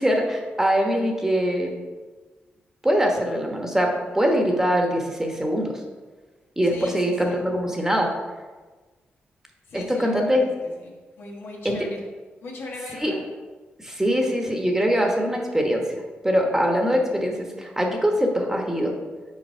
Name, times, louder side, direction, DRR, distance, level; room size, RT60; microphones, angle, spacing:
voice 1, 0.0-1.7 2.8-3.9 4.1-5.8 6.6-8.1 9.7-10.4 11.6-11.8 13.0-13.1 13.8-15.8 16.2-18.9, equal, 10° right, 1 dB, 1.2 m, -22 dB
voice 2, 6.6-7.4 9.7-12.0 12.4-13.2, left 2 dB, 75° left, -1 dB, 1.3 m, -39 dB
5.6 x 4.5 x 4.4 m, 1.3 s
cardioid pair, 65°, 4 cm